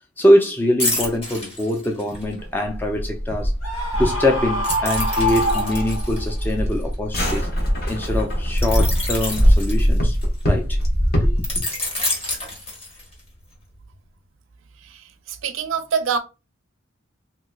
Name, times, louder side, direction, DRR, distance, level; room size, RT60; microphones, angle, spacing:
voice 1, 0.2-3.5 4.0-7.5 7.9-10.2 10.4-10.8 11.2-11.6, left 1 dB, 10° left, 0.4 m, -23 dB
sound 1, 0.8-2.3 4.6-7.4 8.6-10.4 11.4-13.3 13.7-13.9, left 2 dB, 30° left, 1.4 m, -28 dB
sound 2, 2.1-11.6, equal, 50° left, 1.1 m, -22 dB
Screaming, 3.6-6.3, equal, 85° left, 1.2 m, -25 dB
voice 2, 14.8-16.2, right 6 dB, 75° right, 0.6 m, -26 dB
3.2 x 3.0 x 2.2 m
head